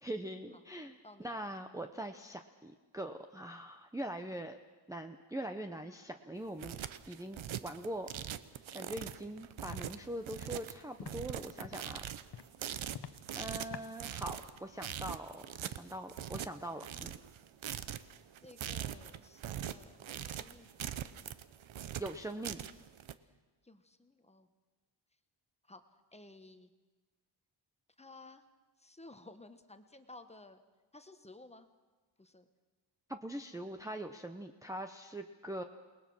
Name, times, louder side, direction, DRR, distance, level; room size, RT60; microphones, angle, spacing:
voice 1, 0.0-1.0 1.2-4.6 4.9-6.8 7.1-8.1 8.7-12.0 13.4-17.1 22.0-22.6 33.1-35.6, right 1 dB, 5° right, 4 dB, 0.7 m, -42 dB
voice 2, 1.0-1.4 12.6-12.9 18.4-21.4 23.2-23.3 23.6-24.5 25.6-26.7 28.0-28.5 28.8-30.6 30.9-31.7 32.2-32.5, left 2 dB, 15° left, 9 dB, 1.1 m, -56 dB
sound 1, 6.4-23.1, right 10 dB, 85° right, 0.9 m, -42 dB
Walk footsteps, 9.0-9.1 9.6-9.8 10.3-10.4 11.0-11.1 11.6-11.9 12.3-12.5 12.9-13.2 13.7-13.9, left 8 dB, 60° left, 1.0 m, -46 dB
28.5 x 19.5 x 6.2 m, 1.3 s
wide cardioid pair, 145°, 46 cm